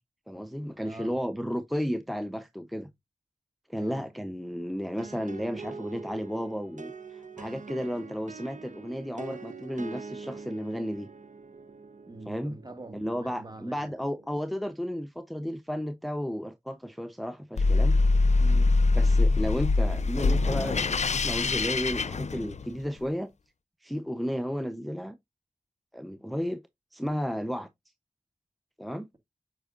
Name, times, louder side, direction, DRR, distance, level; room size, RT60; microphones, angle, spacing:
voice 1, 0.3-2.9 3.7-11.1 12.3-12.6 12.9-18.0 18.9-23.3 23.8-25.2 25.9-26.6 26.9-27.7 28.8-29.1, equal, ahead, 0.7 m, -33 dB
voice 2, 0.8-1.2 3.7-4.1 12.1-13.9 18.4-18.8, right 2 dB, 30° right, 1.8 m, -44 dB
sound 1, 5.0-14.6, right 4 dB, 65° right, 0.8 m, -45 dB
sound 2, 17.6-22.9, left 3 dB, 60° left, 0.5 m, -23 dB
7.9 x 5.2 x 2.5 m
wide cardioid pair, 50°, 14 cm